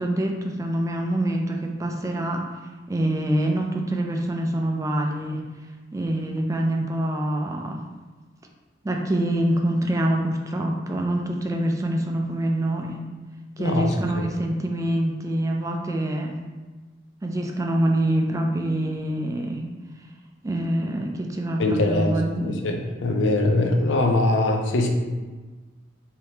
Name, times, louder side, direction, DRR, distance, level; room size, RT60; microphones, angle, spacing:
voice 1, 0.0-2.5 2.9-5.4 5.9-7.8 8.8-13.0 13.6-16.4 17.2-19.7 20.4-22.7, right 1 dB, 15° right, 1 dB, 0.3 m, -25 dB
voice 2, 13.6-14.2 21.6-22.2 22.4-24.9, left 2 dB, 80° left, 3 dB, 0.5 m, -22 dB
3.4 x 2.8 x 2.8 m, 1.3 s
head